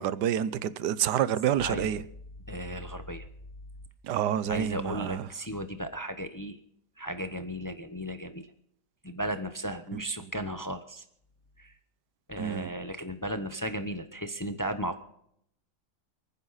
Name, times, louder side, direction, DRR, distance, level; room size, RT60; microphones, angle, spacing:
voice 1, 0.0-2.0 4.0-5.3 10.2-10.3 12.4-12.7, right 10 dB, 80° right, 1.3 m, -28 dB
voice 2, 2.5-3.3 4.5-6.6 7.0-8.5 9.0-11.0 11.6-11.7 12.3-15.0, equal, 30° left, 0.3 m, -35 dB
29.0 x 9.8 x 4.0 m
omnidirectional pair, 1.8 m